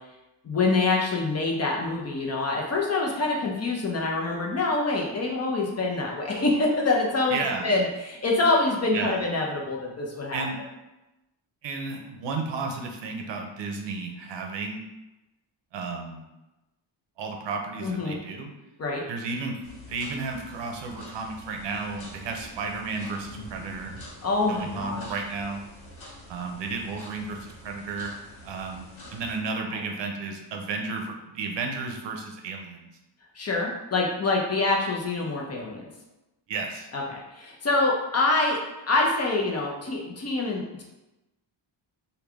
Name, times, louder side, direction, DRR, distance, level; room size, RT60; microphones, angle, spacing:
voice 1, 0.4-10.5 17.8-18.2 18.8-19.0 24.2-25.1 33.3-35.9 36.9-38.6 38.9-40.8, left 3 dB, 35° left, -1 dB, 0.6 m, -26 dB
voice 2, 7.3-7.7 8.9-9.2 10.3-10.6 11.6-14.8 15.7-16.2 17.2-18.5 19.1-23.9 24.5-25.6 26.3-28.1 28.4-32.9 36.5-36.9, right 4 dB, 65° right, 3 dB, 0.6 m, -33 dB
sound 1, 19.6-29.4, equal, 80° left, 1.1 m, -46 dB
3.2 x 2.3 x 3.4 m, 1.0 s
cardioid pair, 100°, 47 cm